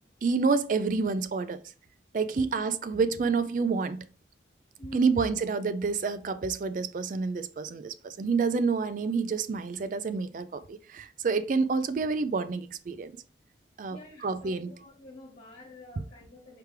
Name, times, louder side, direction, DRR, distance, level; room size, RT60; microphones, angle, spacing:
voice 1, 0.2-1.6 2.1-4.1 4.9-13.1 13.8-14.0 14.2-14.7, right 4 dB, 45° right, 0.3 m, -28 dB
voice 2, 4.8-5.2 13.9-16.6, left 2 dB, 45° left, 1.6 m, -48 dB
4.9 x 3.2 x 3.3 m
head